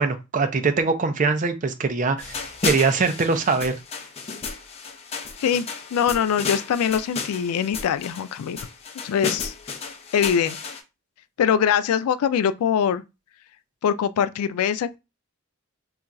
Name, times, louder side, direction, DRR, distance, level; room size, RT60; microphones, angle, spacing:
voice 1, 0.0-3.8, right 4 dB, 35° right, 0.4 m, -22 dB
sound 1, 2.2-10.8, left 4 dB, 30° left, 0.4 m, -33 dB
voice 2, 5.4-8.6 9.0-9.5 10.1-10.6 11.4-13.0 13.8-15.0, left 8 dB, 90° left, 0.3 m, -23 dB
2.4 x 2.3 x 4.0 m
head